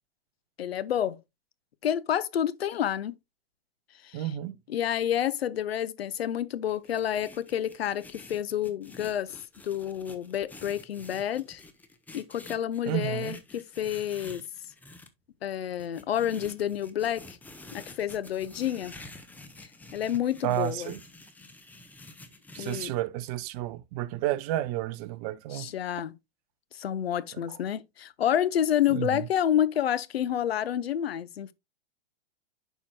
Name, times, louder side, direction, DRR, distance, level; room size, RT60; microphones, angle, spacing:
voice 1, 0.6-1.2 1.8-3.2 4.0-4.2 4.7-9.4 9.6-11.6 12.1-14.4 15.4-17.4 17.7-18.9 19.9-20.9 22.6-22.9 25.5-26.1 26.7-31.5, left 10 dB, 80° left, 0.6 m, -29 dB
voice 2, 4.1-4.6 12.8-13.4 20.4-21.0 22.5-25.7 27.3-27.6 28.9-29.3, right 14 dB, 40° right, 0.6 m, -31 dB
sound 1, 6.7-15.1 15.8-22.9, left 2 dB, 5° left, 0.6 m, -49 dB
11.0 x 4.6 x 2.2 m
hypercardioid pair, 115°, 30 cm